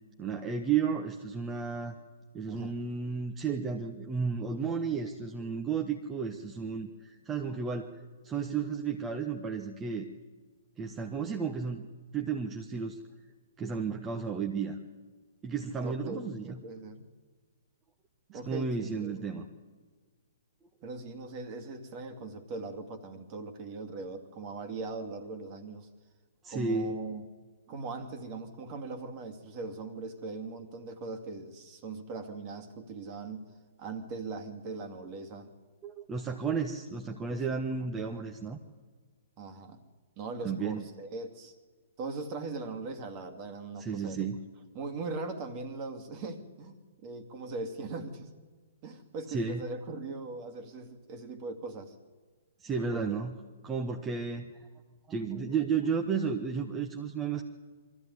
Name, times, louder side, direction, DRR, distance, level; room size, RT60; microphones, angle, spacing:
voice 1, 0.2-2.0 2.3-8.0 8.2-10.1 10.8-11.9 12.1-13.0 13.6-14.8 15.4-16.6 18.3-19.5 26.4-26.9 35.8-38.6 40.4-40.8 43.8-44.4 49.3-49.6 52.6-53.3 53.6-54.5 55.1-57.4, right 5 dB, 15° right, 3 dB, 1.3 m, -33 dB
voice 2, 2.5-2.8 15.8-17.0 18.3-19.5 20.8-25.9 26.5-27.2 27.7-33.5 33.8-35.5 37.3-37.4 37.8-38.3 39.4-39.8 40.2-41.6 42.0-44.3 44.7-48.3 48.8-51.9 52.9-53.2, right 3 dB, 35° right, 8 dB, 2.4 m, -40 dB
23.0 x 14.5 x 9.7 m, 1.5 s
figure-of-eight pair, 120°, 0 cm